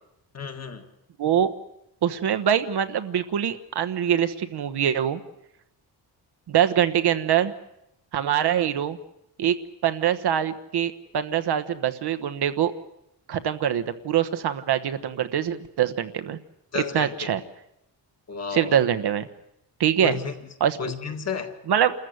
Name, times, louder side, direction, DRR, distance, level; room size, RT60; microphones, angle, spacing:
voice 1, 0.3-0.8 16.7-17.3 18.3-18.8 20.0-20.4 20.8-21.6, left 5 dB, 35° left, 2.0 m, -32 dB
voice 2, 1.2-1.5 2.0-5.2 6.5-7.5 8.1-9.0 9.4-9.5 9.8-12.7 13.3-16.4 16.7-17.4 18.5-19.3 19.8-20.2 20.6-20.8 21.7-21.9, right 9 dB, 60° right, 1.2 m, -24 dB
28.0 x 14.5 x 9.5 m
wide cardioid pair, 165°, 43 cm